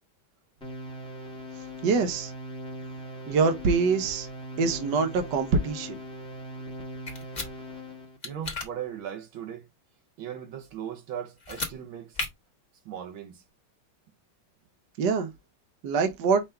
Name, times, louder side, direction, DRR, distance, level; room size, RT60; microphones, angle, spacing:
sound 1, 0.6-8.2, equal, 5° left, 1.1 m, -40 dB
voice 1, 1.8-2.3 3.3-4.3 4.6-6.0 15.0-15.3 15.8-16.4, right 4 dB, 65° right, 1.4 m, -24 dB
sound 2, 7.1-7.5 8.2-8.7 11.4-11.7 12.1-12.3, left 3 dB, 25° left, 1.1 m, -33 dB
voice 2, 8.2-9.7 10.2-12.2 12.8-13.4, right 9 dB, 80° right, 1.8 m, -38 dB
5.7 x 2.6 x 3.3 m
omnidirectional pair, 2.2 m